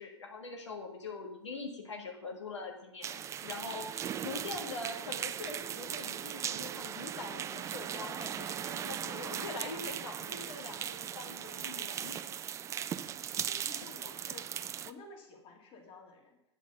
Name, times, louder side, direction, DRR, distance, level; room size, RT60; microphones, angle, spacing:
voice 1, 0.0-12.2, left 3 dB, 80° left, 1 dB, 1.6 m, -43 dB
sound 1, 3.0-14.9, right 9 dB, 20° right, 0.3 m, -38 dB
voice 2, 13.3-14.5 14.8-16.4, left 3 dB, 40° left, 3 dB, 2.1 m, -52 dB
8.1 x 6.3 x 6.6 m, 0.83 s
hypercardioid pair, 100°, 15 cm